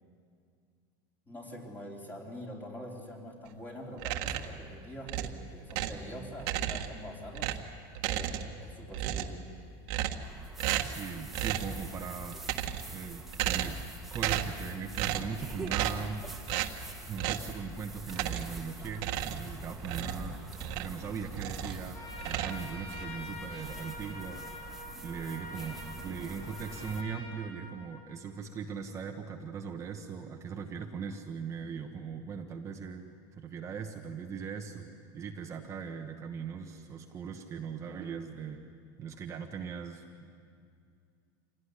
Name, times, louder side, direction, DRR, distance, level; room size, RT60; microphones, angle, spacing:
voice 1, 1.3-7.6 8.0-9.5, equal, 15° left, -1 dB, 4.0 m, -44 dB
sound 1, 4.0-4.6 5.1-6.1 6.4-7.0 7.3-8.6 8.9-9.4 9.9-10.3 10.6-11.0 11.3-11.8 12.3-13.0 13.3-13.9 14.1-14.6 14.9-15.3 15.7-16.1 16.5-16.8 17.2-17.5 18.1-18.6 18.9-21.0 21.3-21.8 22.2-23.0, right 11 dB, 60° right, 1.5 m, -33 dB
sound 2, 10.2-27.0, right 2 dB, ahead, 2.0 m, -45 dB
voice 2, 10.8-13.8 14.1-16.2 17.1-20.4 20.7-33.0 33.3-38.6 39.0-40.3, right 6 dB, 25° right, 3 dB, 1.3 m, -40 dB
Trumpet, 21.8-28.4, left 2 dB, 75° left, 5.4 m, -46 dB
26.5 x 18.0 x 9.9 m, 2.3 s
supercardioid pair, 155°, 12 cm